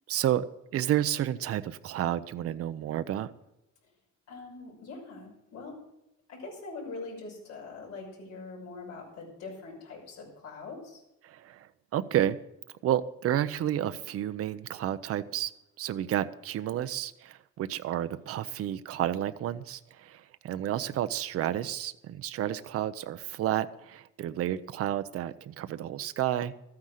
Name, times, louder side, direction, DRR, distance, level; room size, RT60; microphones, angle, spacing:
voice 1, 0.1-0.5 0.7-3.3 11.2-12.4 12.8-15.5 15.8-26.5, right 11 dB, 50° right, 12 dB, 0.6 m, -31 dB
voice 2, 4.3-5.8 6.3-11.0 18.3-18.5, left 3 dB, 55° left, -3 dB, 6.2 m, -43 dB
13.5 x 9.6 x 6.5 m, 0.88 s
cardioid pair, 180°, 30 cm